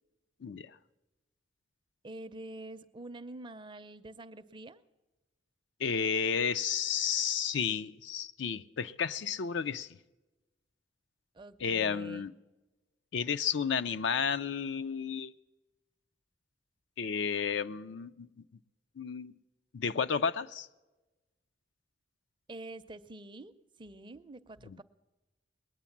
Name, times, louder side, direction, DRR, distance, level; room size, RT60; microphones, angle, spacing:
voice 1, 2.0-4.8 11.3-12.3 22.5-23.5 23.8-24.8, right 2 dB, 25° right, 0.5 m, -46 dB
voice 2, 5.8-9.9 11.6-12.3 13.1-15.3 17.0-18.3 19.0-19.3 19.7-20.7 24.7-24.8, left 6 dB, 65° left, 0.5 m, -32 dB
21.0 x 9.1 x 7.2 m
head